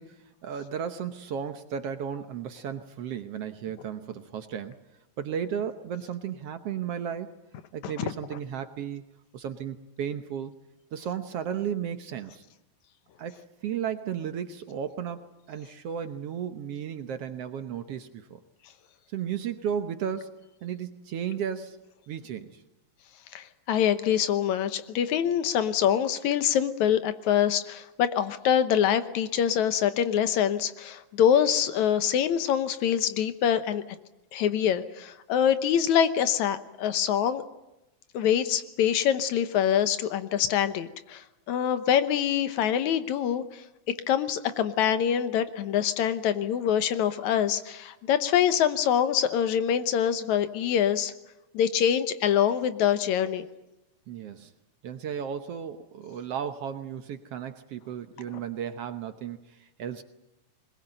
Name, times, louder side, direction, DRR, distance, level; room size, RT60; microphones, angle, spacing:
voice 1, 0.0-4.7 5.2-7.3 7.7-9.0 9.3-10.5 10.9-12.4 13.2-18.4 19.1-20.3 20.6-21.8 22.1-22.6 54.1-54.5 54.8-60.0, right 8 dB, 65° right, 9 dB, 1.7 m, -34 dB
voice 2, 23.3-33.8 34.3-37.4 38.1-43.6 44.1-51.1 51.5-53.5, left 9 dB, 75° left, 11 dB, 2.3 m, -25 dB
21.5 x 20.5 x 9.0 m, 0.95 s
omnidirectional pair, 3.5 m